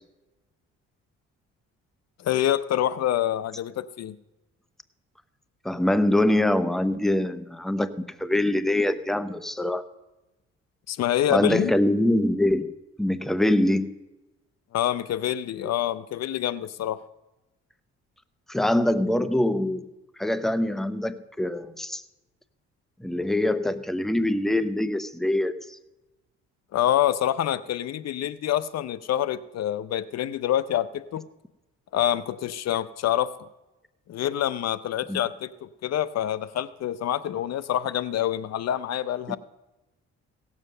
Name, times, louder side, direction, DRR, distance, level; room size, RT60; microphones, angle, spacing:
voice 1, 2.2-4.1 10.9-11.7 14.7-17.0 26.7-31.2 31.9-33.3 34.1-39.4, left 11 dB, 60° left, 16 dB, 0.6 m, -26 dB
voice 2, 5.6-7.9 8.2-9.8 11.3-12.7 13.0-13.9 18.5-19.9 20.2-22.0 23.0-25.8 35.1-35.2 39.3-39.4, left 1 dB, ahead, 12 dB, 0.8 m, -24 dB
17.0 x 7.4 x 6.6 m, 0.99 s
cardioid pair, 85°, 29 cm